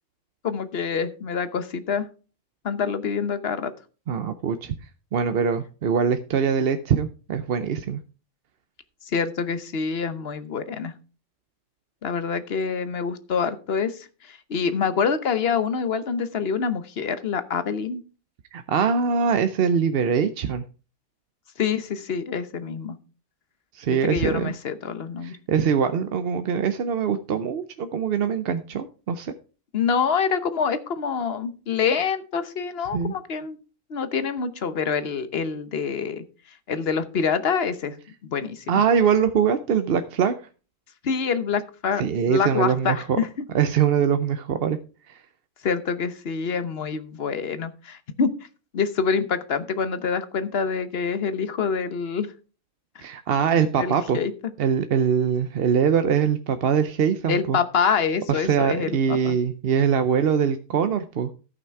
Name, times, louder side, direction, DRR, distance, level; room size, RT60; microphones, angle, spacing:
voice 1, 0.4-2.1 2.6-3.7 9.1-10.9 12.0-18.0 21.6-23.0 24.0-25.4 29.7-33.6 33.9-36.2 36.7-38.0 38.3-38.8 41.0-42.0 42.3-43.3 45.6-48.3 48.7-52.3 52.9-53.1 53.8-54.3 57.3-59.4, left 6 dB, 55° left, 12 dB, 1.2 m, -26 dB
voice 2, 4.1-4.7 5.1-8.0 18.5-20.6 23.7-24.5 25.2-29.3 32.9-33.1 38.7-40.3 42.0-43.2 43.5-44.8 45.1-45.2 53.0-54.2 54.6-57.6 58.3-61.3, right 7 dB, 55° right, 9 dB, 0.8 m, -23 dB
13.5 x 5.9 x 4.6 m, 0.36 s
omnidirectional pair, 1.3 m